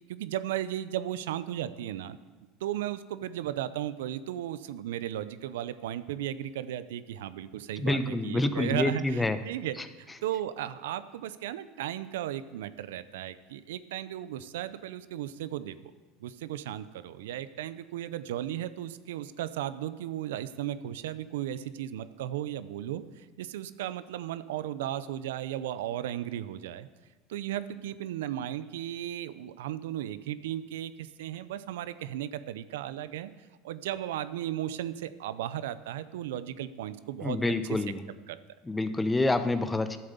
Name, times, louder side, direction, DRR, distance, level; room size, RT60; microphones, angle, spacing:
voice 1, 0.1-2.2 2.6-9.8 10.2-15.8 16.2-26.9 27.3-33.3 33.6-37.4 37.7-37.8 38.3-38.4, right 12 dB, 85° right, 14 dB, 0.5 m, -35 dB
voice 2, 7.8-9.4 37.2-38.0 38.7-40.0, left 2 dB, 15° left, 10 dB, 0.9 m, -27 dB
11.0 x 7.6 x 6.9 m, 1.3 s
supercardioid pair, 95°, 0 cm